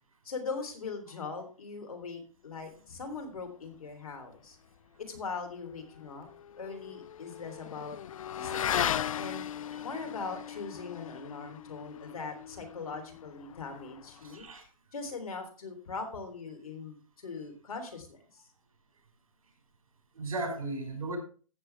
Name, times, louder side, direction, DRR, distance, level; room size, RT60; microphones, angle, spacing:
voice 1, 0.2-4.6 5.0-6.3 6.6-8.0 8.3-9.4 9.8-14.5 14.9-18.4, left 4 dB, 90° left, 6 dB, 3.5 m, -41 dB
Motorcycle / Accelerating revving vroom, 5.7-14.5, left 10 dB, 70° left, 0.5 m, -37 dB
voice 2, 14.2-14.7 20.1-21.2, right 2 dB, 80° right, 3 dB, 5.2 m, -36 dB
14.5 x 7.6 x 3.4 m, 0.37 s
hypercardioid pair, 155°, 18 cm